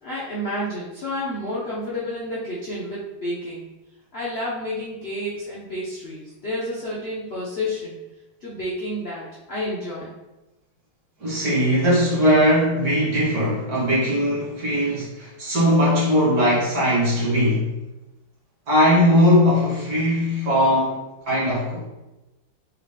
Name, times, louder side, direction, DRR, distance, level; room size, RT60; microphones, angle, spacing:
voice 1, 0.0-3.6 4.1-8.0 8.4-10.1, left 1 dB, 50° left, -8 dB, 0.7 m, -30 dB
voice 2, 11.2-17.7 18.7-21.0 21.3-21.9, equal, 55° right, -7 dB, 1.9 m, -19 dB
3.7 x 3.5 x 3.2 m, 1.0 s
omnidirectional pair, 2.1 m